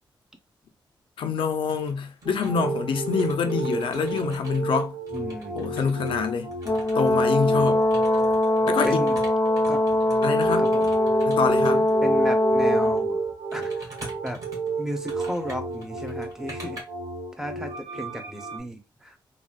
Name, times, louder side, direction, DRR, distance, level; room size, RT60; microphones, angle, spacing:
voice 1, 1.2-4.9 5.6-6.5 7.0-7.8 8.6-9.0 10.2-10.7 11.3-11.9, left 5 dB, 90° left, 0.5 m, -26 dB
sound 1, 1.5-1.9 2.2-6.1 6.5-12.0 12.8-13.0 13.5-16.8, right 1 dB, 45° right, 1.6 m, -45 dB
sound 2, 2.2-18.6, right 3 dB, 70° right, 1.0 m, -32 dB
voice 2, 5.1-5.6 8.8-9.2 9.7-9.8 10.6-10.9 12.0-13.2 13.5-14.0 14.2-14.4 14.8-16.8 17.4-19.2, equal, 5° right, 0.7 m, -34 dB
Brass instrument, 6.7-13.0, left 1 dB, 35° left, 0.4 m, -22 dB
3.8 x 2.3 x 2.3 m
wide cardioid pair, 130°, 9 cm